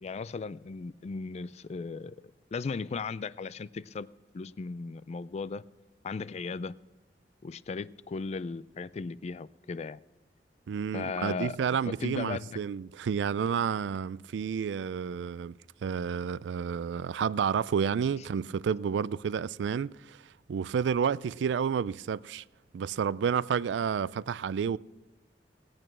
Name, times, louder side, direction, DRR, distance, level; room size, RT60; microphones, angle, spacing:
voice 1, 0.0-2.2 2.5-4.1 4.3-5.6 6.0-6.8 7.4-10.0 10.9-11.6 11.9-12.6, left 4 dB, 35° left, 0.3 m, -36 dB
voice 2, 10.7-15.5 15.8-20.2 20.5-22.4 22.7-24.8, right 7 dB, 80° right, 0.3 m, -30 dB
18.0 x 8.8 x 6.1 m
head